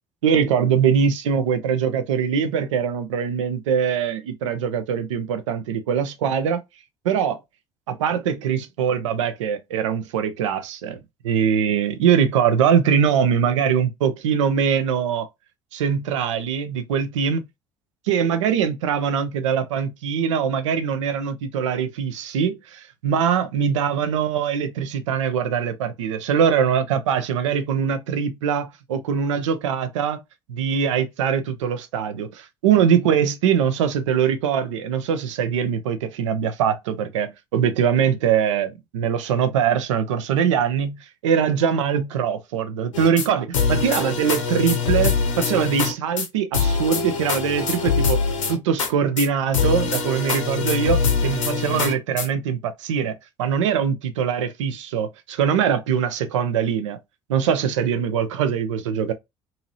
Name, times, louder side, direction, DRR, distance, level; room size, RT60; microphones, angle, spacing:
voice 1, 0.2-6.6 7.0-7.4 7.9-11.0 11.2-15.3 15.7-17.4 18.1-30.2 30.5-48.2 48.5-57.0 57.3-59.1, right 7 dB, 80° right, 0.5 m, -22 dB
sound 1, 42.9-43.3 43.5-45.9 46.2-46.3 46.5-48.9 49.2-49.3 49.5-52.3, left 5 dB, 85° left, 0.6 m, -23 dB
2.8 x 2.7 x 2.6 m
figure-of-eight pair, 55°, 16 cm